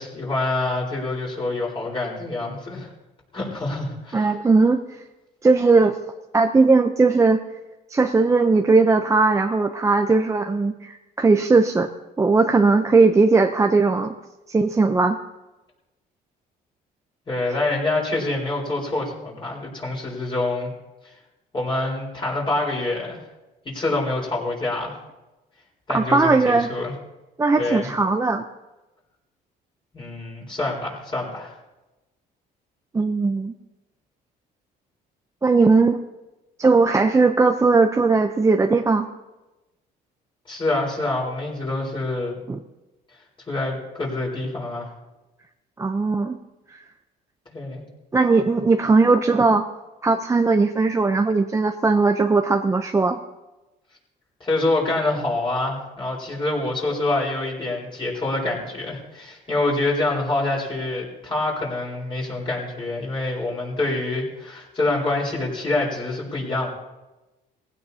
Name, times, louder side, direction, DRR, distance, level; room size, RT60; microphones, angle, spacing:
voice 1, 0.0-2.9 3.3-4.3 17.3-20.7 21.5-23.2 23.6-24.9 25.9-26.9 27.6-27.9 29.9-31.5 40.5-42.4 43.5-44.9 47.5-47.8 54.4-66.7, left 2 dB, 30° left, -3 dB, 4.3 m, -26 dB
voice 2, 4.1-4.8 5.4-6.0 6.3-7.4 7.9-11.9 12.2-14.1 14.5-15.2 25.9-26.7 27.4-28.4 32.9-33.5 35.4-36.0 36.6-39.1 42.5-42.6 45.8-46.4 48.1-49.6 50.0-53.2, right 3 dB, 20° right, 5 dB, 0.7 m, -18 dB
18.5 x 16.0 x 2.8 m, 1.1 s
cardioid pair, 110°, 17 cm